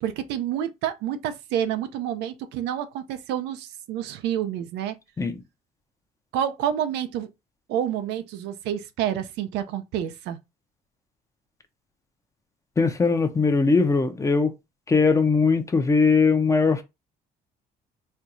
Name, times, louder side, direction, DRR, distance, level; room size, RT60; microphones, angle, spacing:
voice 1, 0.0-5.0 6.3-7.3 7.7-10.4, right 10 dB, 90° right, 0.5 m, -28 dB
voice 2, 12.8-14.5 14.9-16.8, left 4 dB, 20° left, 0.6 m, -20 dB
4.4 x 2.3 x 2.6 m
cardioid pair, 110°, 17 cm